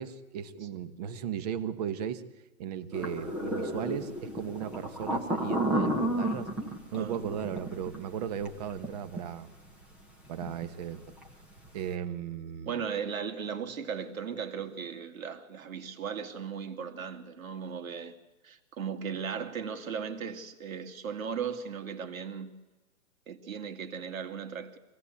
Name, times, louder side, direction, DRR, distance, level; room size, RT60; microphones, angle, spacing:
voice 1, 0.0-2.2 2.6-6.5 6.9-9.5 10.3-11.1 11.7-12.8, right 8 dB, 30° right, 1.1 m, -36 dB
sound 1, 2.9-8.9 9.2-9.3 10.4-10.7 11.0-11.2, right 1 dB, 5° right, 0.7 m, -32 dB
voice 2, 12.7-18.1 18.4-22.5 23.3-24.8, right 7 dB, 70° right, 2.6 m, -37 dB
25.5 x 17.5 x 8.3 m
hypercardioid pair, 160°, 43 cm